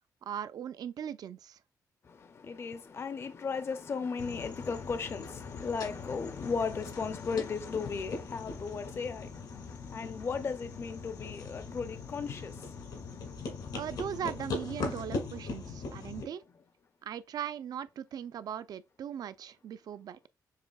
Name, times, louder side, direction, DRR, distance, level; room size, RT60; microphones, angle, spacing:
voice 1, 0.2-1.6 13.7-16.4 17.0-20.2, right 9 dB, 65° right, 0.4 m, -39 dB
voice 2, 2.4-12.8 13.5-13.7, left 5 dB, 35° left, 0.4 m, -36 dB
sound 1, 4.2-16.2, left 4 dB, 80° left, 1.7 m, -41 dB
6.7 x 2.7 x 2.3 m
cardioid pair, 115°, 7 cm